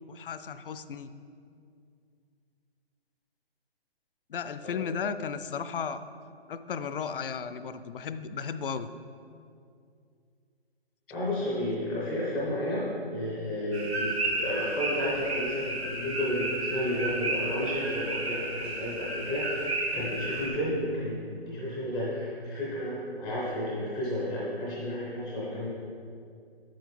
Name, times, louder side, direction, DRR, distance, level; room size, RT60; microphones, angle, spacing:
voice 1, 0.1-1.1 4.3-6.0 6.5-8.9, left 6 dB, 60° left, 12 dB, 0.5 m, -35 dB
voice 2, 11.1-25.7, left 1 dB, ahead, -6 dB, 0.4 m, -32 dB
sound 1, 13.7-20.5, right 2 dB, 85° right, 1.8 m, -32 dB
7.6 x 7.1 x 3.6 m, 2.4 s
figure-of-eight pair, 140°, 31 cm